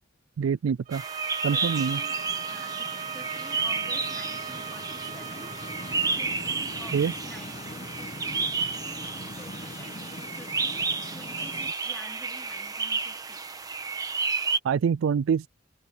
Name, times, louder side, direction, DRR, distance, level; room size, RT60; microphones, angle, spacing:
voice 1, 0.4-1.0 1.4-2.0 6.9-7.1 14.6-15.5, right 7 dB, 85° right, 0.3 m, -25 dB
sound 1, 0.9-14.6, right 4 dB, 20° right, 1.3 m, -32 dB
sound 2, 0.9-6.2, right 8 dB, 40° right, 2.2 m, -38 dB
voice 2, 1.5-2.2 2.4-5.5 5.8-8.5 8.8-10.9 11.1-13.4, equal, 5° left, 4.5 m, -49 dB
sound 3, 1.6-11.7, left 2 dB, 35° left, 1.1 m, -43 dB
head